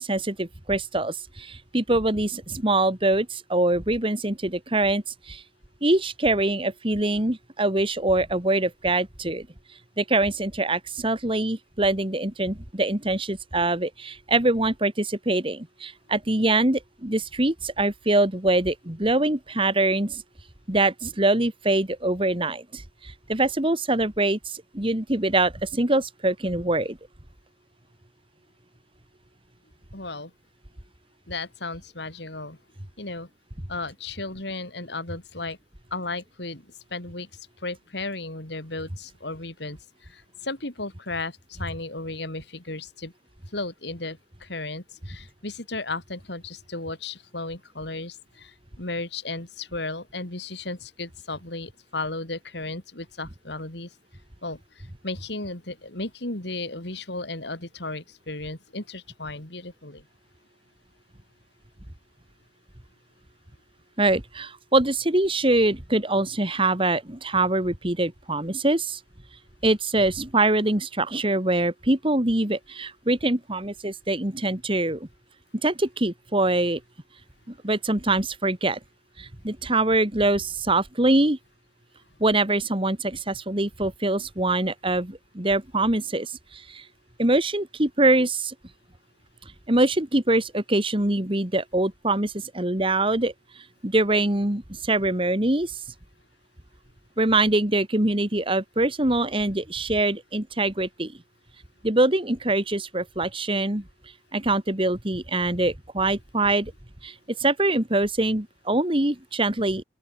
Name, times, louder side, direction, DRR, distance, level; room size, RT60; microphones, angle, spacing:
voice 1, 0.0-5.4 5.8-9.5 10.0-20.2 20.7-27.0 64.0-69.0 69.6-75.1 75.6-76.8 77.5-78.8 79.2-81.4 82.2-86.8 87.2-88.5 89.7-93.3 93.8-95.8 97.2-101.2 101.8-103.8 104.3-106.7 107.0-107.1 107.4-109.8, right 2 dB, 30° right, 2.1 m, -24 dB
voice 2, 29.9-30.3 31.3-32.6 33.0-33.3 33.7-35.6 35.9-37.3 37.6-39.8 40.1-43.1 43.5-53.9 54.4-54.6 55.0-60.0, left 2 dB, 60° left, 3.3 m, -34 dB
open air
head